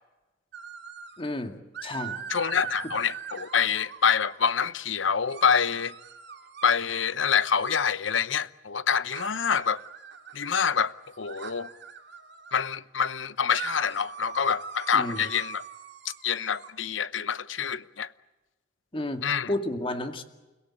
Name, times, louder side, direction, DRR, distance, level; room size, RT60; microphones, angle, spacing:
sound 1, 0.5-1.2 1.7-4.5 5.3-7.9 9.1-12.6 13.5-16.7, right 7 dB, 60° right, 2.5 m, -42 dB
voice 1, 1.2-2.2 14.9-15.2 18.9-20.2, left 1 dB, 30° left, 2.3 m, -32 dB
voice 2, 2.3-5.9 6.6-9.8 10.3-11.7 12.5-15.6 16.2-18.1 19.2-19.5, left 6 dB, 80° left, 0.9 m, -26 dB
30.0 x 17.0 x 8.9 m
head